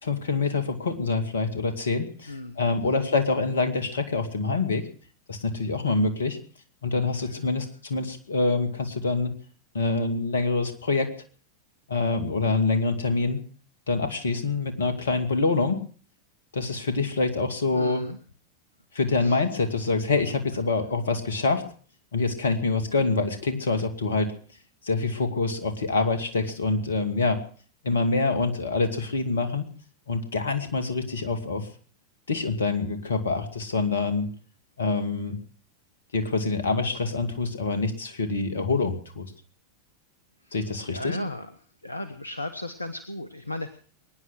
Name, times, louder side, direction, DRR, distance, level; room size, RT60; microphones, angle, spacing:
voice 1, 0.0-4.9 5.3-6.4 6.8-9.3 9.7-11.1 11.9-13.4 13.9-15.8 16.5-18.0 18.9-21.6 22.1-24.3 24.8-27.4 27.8-29.7 30.1-31.7 32.3-34.3 34.8-35.4 36.1-39.3 40.5-41.2, left 3 dB, 70° left, 10 dB, 2.2 m, -26 dB
voice 2, 2.3-3.1 7.1-7.6 17.7-18.2 19.1-19.4 40.4-41.5 41.8-43.8, left 1 dB, 85° left, 11 dB, 1.0 m, -36 dB
22.5 x 9.9 x 6.3 m, 0.44 s
figure-of-eight pair, 90°, 0 cm